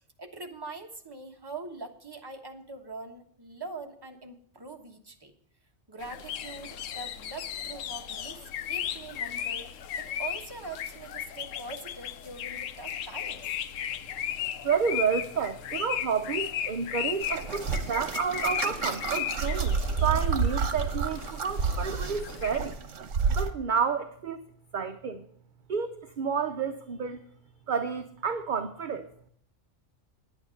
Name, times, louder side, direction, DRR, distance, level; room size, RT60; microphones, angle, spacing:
voice 1, 0.2-5.3 5.9-9.7 10.0-13.5, right 3 dB, 20° right, 3 dB, 1.2 m, -43 dB
sound 1, 6.0-22.6, left 10 dB, 85° left, 1.0 m, -36 dB
voice 2, 14.6-22.8 23.3-24.4 24.7-25.2 25.7-27.2 27.7-29.3, right 6 dB, 50° right, 8 dB, 0.7 m, -30 dB
sound 2, 17.2-23.5, right 5 dB, 70° right, 1.3 m, -30 dB
9.8 x 9.0 x 6.4 m, 0.64 s
omnidirectional pair, 1.3 m